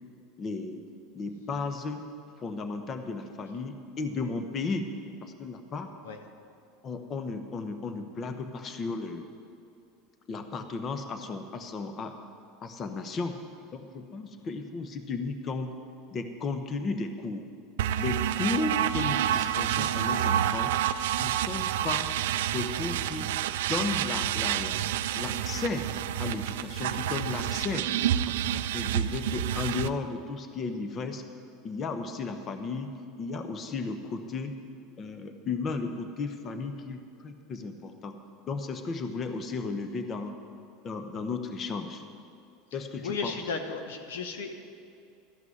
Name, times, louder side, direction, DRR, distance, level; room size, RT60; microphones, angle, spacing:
voice 1, 0.4-0.8 1.1-2.0 2.4-4.9 5.2-5.9 6.8-9.3 10.3-12.1 12.6-13.4 13.7-15.7 16.1-17.5 18.0-20.7 21.2-22.1 22.5-23.3 23.7-25.9 26.2-27.9 28.3-31.2 31.6-34.5 35.0-38.1 38.5-40.3 40.8-42.0 42.7-43.3, left 4 dB, 35° left, 7 dB, 1.0 m, -34 dB
sound 1, 17.8-29.9, right 11 dB, 80° right, 0.3 m, -29 dB
voice 2, 42.7-44.5, left 4 dB, 90° left, 5 dB, 1.1 m, -35 dB
13.5 x 5.9 x 9.4 m, 2.6 s
supercardioid pair, 110°, 0 cm